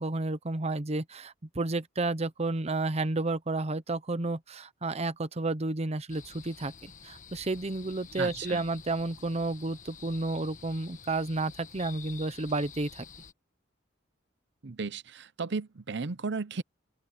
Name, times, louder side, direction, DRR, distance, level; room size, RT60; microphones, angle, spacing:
voice 1, 0.0-6.7 7.0-13.1, right 2 dB, 35° right, 0.9 m, -31 dB
sound 1, 6.1-13.3, left 7 dB, 40° left, 1.4 m, -49 dB
voice 2, 8.2-8.6 14.6-16.6, right 4 dB, 65° right, 0.7 m, -35 dB
open air
head